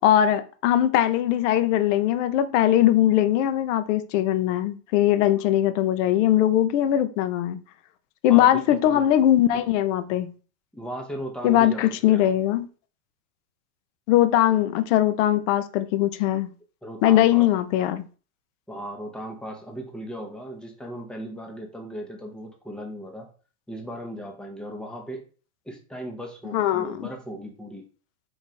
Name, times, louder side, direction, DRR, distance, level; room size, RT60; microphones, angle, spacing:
voice 1, 0.0-7.6 8.2-10.3 11.4-12.7 14.1-16.5 17.0-18.0 26.5-27.1, left 12 dB, 50° left, 0.6 m, -20 dB
voice 2, 8.3-9.1 10.7-12.4 14.5-14.6 16.8-17.5 18.7-23.3 23.7-25.2 25.6-27.8, equal, ahead, 0.6 m, -37 dB
4.8 x 2.6 x 4.2 m
supercardioid pair, 130°, 47 cm